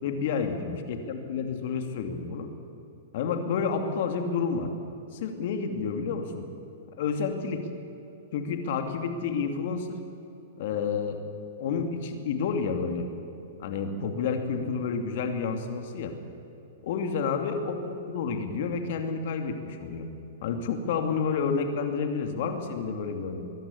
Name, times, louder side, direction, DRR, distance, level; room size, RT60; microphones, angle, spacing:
voice 1, 0.0-2.5 3.1-4.7 5.1-6.5 7.0-7.7 8.3-10.0 10.6-11.2 11.6-13.1 13.6-16.2 16.8-20.1 20.4-23.4, left 5 dB, 60° left, 6 dB, 2.7 m, -30 dB
22.0 x 12.0 x 9.9 m, 2.8 s
hypercardioid pair, 130°, 0 cm